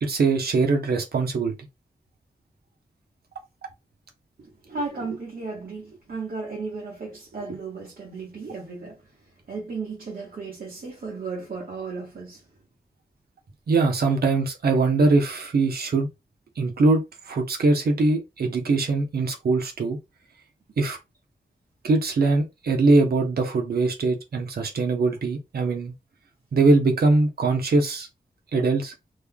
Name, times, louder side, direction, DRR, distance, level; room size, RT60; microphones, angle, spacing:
voice 1, 0.0-1.5 13.7-16.1 16.6-20.0 20.8-21.0 21.8-25.9 26.5-28.1 28.5-28.9, right 3 dB, 85° right, 0.8 m, -22 dB
voice 2, 4.4-9.0 9.5-12.4, right 4 dB, 70° right, 1.2 m, -34 dB
3.1 x 2.2 x 3.6 m
wide cardioid pair, 145°, 16 cm